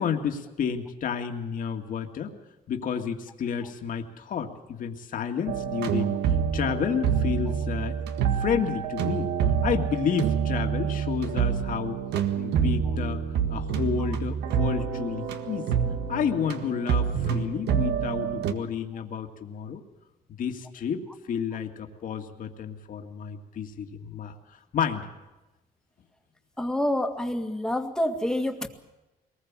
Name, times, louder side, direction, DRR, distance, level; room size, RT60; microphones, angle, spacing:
voice 1, 0.0-2.4 2.7-6.2 6.5-8.0 8.4-12.0 12.3-13.2 13.5-15.7 16.1-19.8 20.4-25.1, left 7 dB, 50° left, 4 dB, 2.1 m, -31 dB
sound 1, 5.5-18.5, right 7 dB, 80° right, 1.7 m, -27 dB
voice 2, 26.6-28.7, left 1 dB, 5° left, 5 dB, 2.0 m, -27 dB
22.5 x 20.0 x 7.5 m, 1.0 s
cardioid pair, 110°, 17 cm